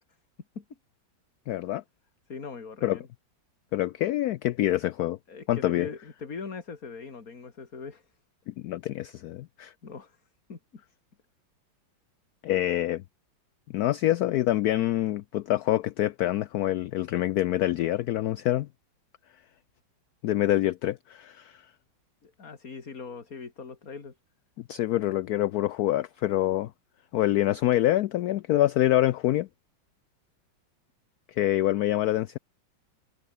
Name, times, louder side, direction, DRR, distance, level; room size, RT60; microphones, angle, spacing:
voice 1, 1.5-1.8 2.8-3.0 3.7-5.2 5.5-5.9 8.5-9.7 12.4-13.0 13.7-18.7 20.2-21.6 24.7-26.7 27.1-29.5 31.3-32.4, left 14 dB, 75° left, 0.8 m, -26 dB
voice 2, 2.3-3.1 5.3-8.1 9.8-10.2 10.5-10.6 22.2-24.2 24.9-25.0, left 5 dB, 45° left, 3.0 m, -41 dB
omnidirectional pair, 2.2 m